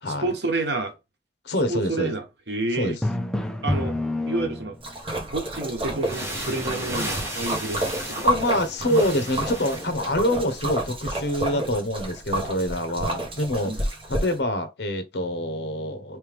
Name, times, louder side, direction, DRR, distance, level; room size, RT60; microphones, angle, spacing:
voice 1, 0.1-0.9 1.7-3.0 3.6-4.0 4.3-4.8 5.3-8.3 13.7-13.9, right 2 dB, 70° right, 1.1 m, -29 dB
voice 2, 1.4-2.1 2.7-2.9 8.2-13.7 14.1-16.2, left 1 dB, 70° left, 0.9 m, -26 dB
Drum, 3.0-5.0, left 1 dB, 5° left, 0.4 m, -27 dB
Splash splatter, 4.8-14.3, right 1 dB, 30° right, 1.4 m, -30 dB
sound 1, 6.0-10.1, right 1 dB, 15° right, 1.2 m, -34 dB
3.3 x 3.3 x 3.4 m
head